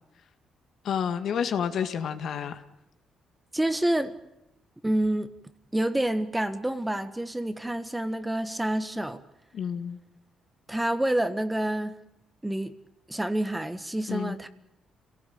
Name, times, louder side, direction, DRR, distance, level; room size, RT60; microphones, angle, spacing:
voice 1, 0.8-2.6 9.5-10.0 14.1-14.4, left 8 dB, 65° left, 8 dB, 1.8 m, -29 dB
voice 2, 3.5-4.1 4.8-5.3 5.7-9.2 10.7-11.9 12.4-12.7 13.1-14.5, right 1 dB, 10° right, 11 dB, 1.6 m, -28 dB
27.5 x 18.0 x 8.8 m, 0.85 s
cardioid pair, 90°, 0 cm